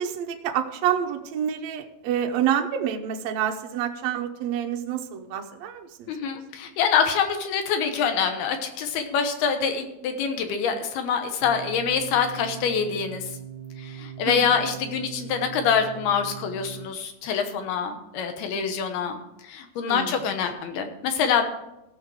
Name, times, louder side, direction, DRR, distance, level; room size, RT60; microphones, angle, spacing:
voice 1, 0.0-6.1 14.2-14.5 19.9-20.3, right 9 dB, 85° right, 4 dB, 1.5 m, -28 dB
voice 2, 6.1-13.2 13.8-19.2 19.5-21.4, left 6 dB, 80° left, 6 dB, 3.1 m, -25 dB
sound 1, 11.4-16.9, right 9 dB, 60° right, 2.6 m, -40 dB
16.5 x 6.5 x 4.8 m, 0.88 s
omnidirectional pair, 4.5 m